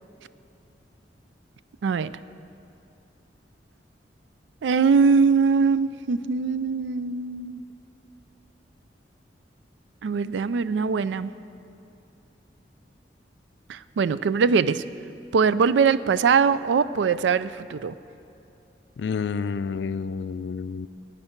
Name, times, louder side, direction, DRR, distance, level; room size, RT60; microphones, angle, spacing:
voice 1, 1.8-2.1 4.6-7.6 10.0-11.3 13.7-14.8 15.3-17.9, right 5 dB, 90° right, 15 dB, 0.4 m, -22 dB
voice 2, 19.0-20.9, left 5 dB, 70° left, 14 dB, 0.4 m, -29 dB
16.5 x 8.9 x 4.4 m, 2.8 s
head